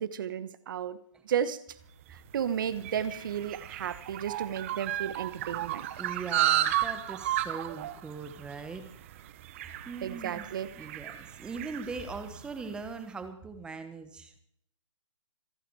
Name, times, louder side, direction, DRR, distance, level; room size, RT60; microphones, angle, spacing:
voice 1, 0.0-1.0 1.2-1.6 2.1-5.9 10.0-10.7, right 8 dB, 40° right, 15 dB, 1.3 m, -33 dB
sound 1, 2.1-12.7, right 13 dB, 25° right, 0.9 m, -34 dB
voice 2, 6.0-8.9 9.8-10.5 10.8-14.4, right 4 dB, 5° right, 9 dB, 1.3 m, -40 dB
26.5 x 10.0 x 4.8 m, 0.67 s
hypercardioid pair, 160°, 16 cm